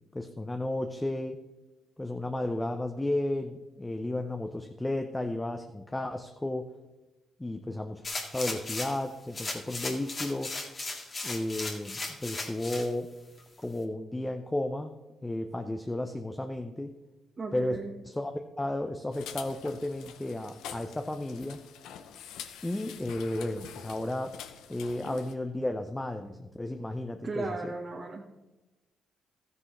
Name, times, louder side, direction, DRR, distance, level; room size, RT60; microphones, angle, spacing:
voice 1, 0.1-1.4 2.0-6.7 7.4-8.1 8.3-10.5 11.2-13.1 13.6-14.9 15.2-16.9 17.5-17.8 18.0-21.6 22.6-24.3 24.7-27.5, left 1 dB, 15° left, 6 dB, 0.8 m, -33 dB
sound 1, 8.0-9.0 9.3-12.9 13.4-13.5, left 3 dB, 40° left, 2.0 m, -36 dB
voice 2, 17.4-18.0 27.2-28.3, right 3 dB, 40° right, -1 dB, 1.5 m, -36 dB
sound 2, 19.1-25.3, left 8 dB, 85° left, 0.7 m, -46 dB
13.5 x 9.6 x 3.3 m, 1.1 s
supercardioid pair, 65°, 0 cm